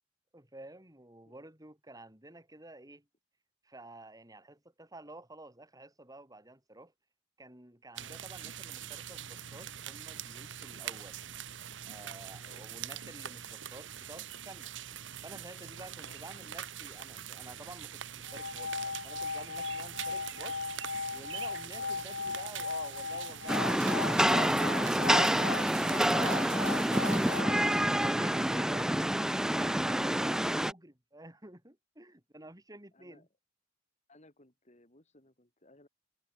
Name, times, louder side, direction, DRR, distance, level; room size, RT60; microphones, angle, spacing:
voice 1, 0.3-3.1 3.6-6.9 7.4-11.2 11.8-14.7 15.2-20.6 21.1-23.5 23.8-33.3, right 2 dB, 20° right, 4.6 m, -50 dB
sound 1, 8.0-27.4, right 9 dB, 75° right, 1.4 m, -44 dB
sound 2, 18.2-28.4, left 4 dB, 70° left, 1.2 m, -38 dB
voice 2, 21.6-22.0 32.9-33.3 34.1-35.9, left 1 dB, 40° left, 6.9 m, -60 dB
Rain, 23.5-30.7, right 1 dB, 5° right, 0.4 m, -27 dB
head